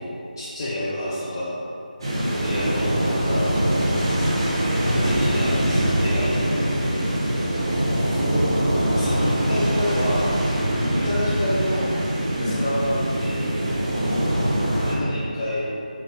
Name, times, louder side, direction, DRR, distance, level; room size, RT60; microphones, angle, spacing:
voice 1, 0.0-1.5 2.4-3.6 4.8-6.7 9.0-10.3 10.9-11.9 12.4-13.5 14.8-15.7, equal, 25° left, -10 dB, 0.3 m, -28 dB
sound 1, 2.0-14.9, right 1 dB, 35° right, 0.5 m, -23 dB
voice 2, 8.0-8.9 10.7-11.0 12.4-12.6 13.9-14.6, equal, 50° left, -7 dB, 0.9 m, -30 dB
3.9 x 2.2 x 2.8 m, 2.6 s
figure-of-eight pair, 160°, 5 cm